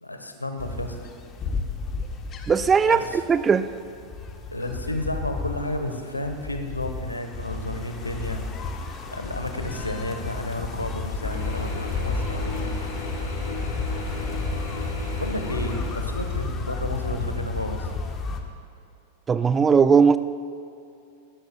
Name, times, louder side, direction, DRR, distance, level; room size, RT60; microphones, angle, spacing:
voice 1, 0.0-1.0 2.8-3.2 4.5-8.4 9.1-12.8 15.2-17.9, left 1 dB, 85° left, 6 dB, 1.2 m, -32 dB
sound 1, 0.6-18.4, left 3 dB, 25° left, 1.2 m, -32 dB
voice 2, 2.5-3.0 3.3-3.7 19.3-20.2, right 6 dB, 20° right, 13 dB, 0.4 m, -18 dB
Mechanisms / Drill, 11.2-16.7, left 2 dB, 60° left, 3.5 m, -35 dB
20.5 x 16.0 x 2.3 m, 2.6 s
figure-of-eight pair, 90°, 0 cm